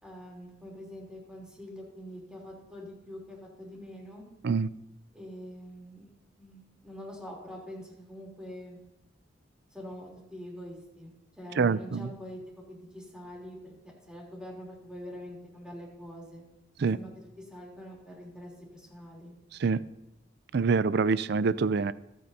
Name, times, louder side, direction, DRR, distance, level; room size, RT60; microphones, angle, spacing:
voice 1, 0.0-4.2 5.1-6.1 6.4-8.8 9.7-12.4 12.7-13.7 14.1-16.4 16.9-19.3, equal, 5° right, -3 dB, 3.4 m, -45 dB
voice 2, 11.6-12.1 16.8-17.0 19.6-19.8 20.5-21.9, right 5 dB, 60° right, 17 dB, 0.4 m, -25 dB
26.0 x 8.7 x 2.8 m, 0.89 s
head